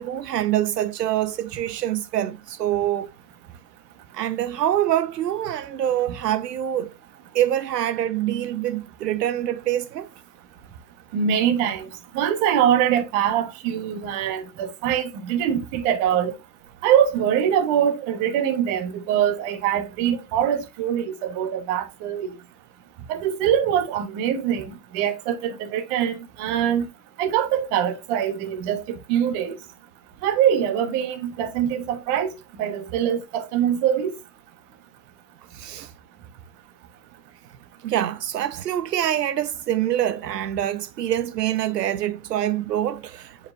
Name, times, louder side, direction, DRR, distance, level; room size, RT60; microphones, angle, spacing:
voice 1, 0.0-3.1 4.1-6.9 7.3-10.1 35.5-35.9 37.8-43.4, right 11 dB, 75° right, 0.9 m, -25 dB
voice 2, 11.1-11.9 12.1-16.3 16.8-22.3 23.1-26.8 27.2-29.6 30.2-32.3 32.6-34.1, right 9 dB, 25° right, 1.3 m, -23 dB
10.5 x 4.8 x 2.5 m
hypercardioid pair, 155°, 49 cm